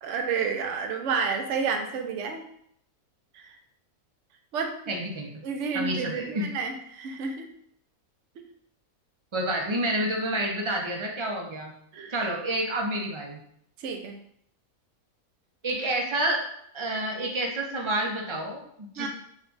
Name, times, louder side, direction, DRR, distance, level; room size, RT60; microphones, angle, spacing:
voice 1, 0.0-2.4 3.3-3.5 4.5-4.7 5.4-7.5 11.9-12.2 13.8-14.2 19.0-19.1, right 5 dB, 65° right, 5 dB, 0.9 m, -30 dB
voice 2, 4.9-5.3 5.7-6.5 9.3-11.7 12.1-13.4 15.6-16.4 16.7-19.1, right 1 dB, 40° right, 0 dB, 0.4 m, -29 dB
5.2 x 2.3 x 3.9 m, 0.70 s
omnidirectional pair, 1.5 m